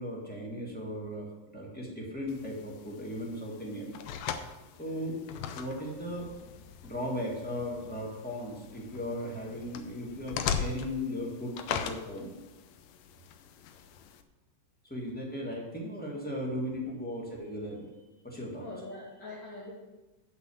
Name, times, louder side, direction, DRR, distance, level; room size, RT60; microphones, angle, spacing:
voice 1, 0.0-3.9 4.8-5.2 5.5-6.3 6.8-12.3 14.9-17.9 18.2-18.7, left 1 dB, 5° left, -3 dB, 0.7 m, -37 dB
sound 1, 2.3-14.2, left 7 dB, 75° left, 1.7 m, -40 dB
voice 2, 18.6-19.7, left 2 dB, 45° left, -6 dB, 2.2 m, -43 dB
8.2 x 5.6 x 7.0 m, 1.1 s
omnidirectional pair, 3.5 m